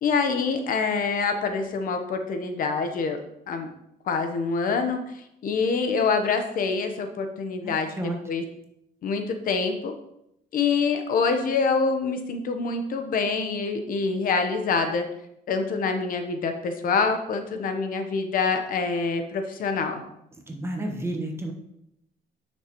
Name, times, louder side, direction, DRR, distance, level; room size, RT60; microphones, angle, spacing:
voice 1, 0.0-3.2 3.5-3.7 4.1-5.0 5.4-8.0 8.3-8.4 9.0-9.9 10.5-15.1 15.5-20.0, left 4 dB, 60° left, 6 dB, 0.9 m, -25 dB
voice 2, 7.6-8.2 20.5-21.5, right 1 dB, 15° right, 2 dB, 1.2 m, -31 dB
9.5 x 6.4 x 3.0 m, 0.80 s
cardioid pair, 130°, 16 cm